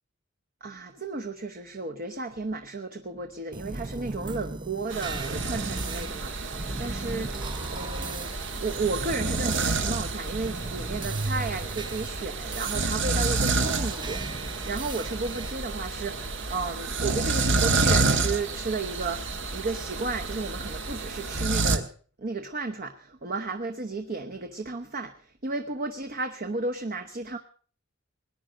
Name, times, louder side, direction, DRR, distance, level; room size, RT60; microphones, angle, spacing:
voice 1, 0.6-14.2 14.6-21.9 22.2-27.4, right 3 dB, 45° right, 6 dB, 1.0 m, -33 dB
sound 1, 3.5-15.5, right 3 dB, 20° right, 0.6 m, -38 dB
sound 2, 4.9-21.8, right 3 dB, 65° right, 1.6 m, -29 dB
19.0 x 10.0 x 6.4 m, 0.44 s
head